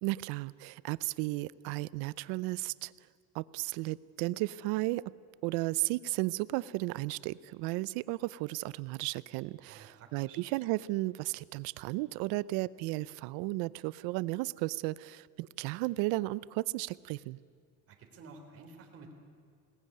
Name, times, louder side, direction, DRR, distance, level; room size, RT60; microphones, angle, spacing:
voice 1, 0.0-2.9 3.3-5.0 5.4-17.4, right 20 dB, 90° right, 20 dB, 0.7 m, -34 dB
voice 2, 9.7-10.4 17.9-19.1, right 4 dB, 40° right, 3 dB, 3.5 m, -52 dB
20.5 x 19.0 x 9.5 m, 2.1 s
cardioid pair, 145°, 36 cm